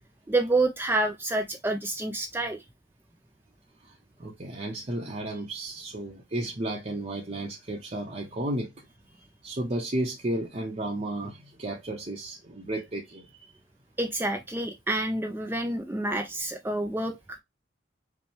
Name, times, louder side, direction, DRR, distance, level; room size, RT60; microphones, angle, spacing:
voice 1, 0.3-2.6 14.0-17.4, right 2 dB, 10° right, 0.4 m, -28 dB
voice 2, 3.8-8.9 9.4-13.5, right 1 dB, 35° right, 0.8 m, -33 dB
5.2 x 2.2 x 3.0 m
head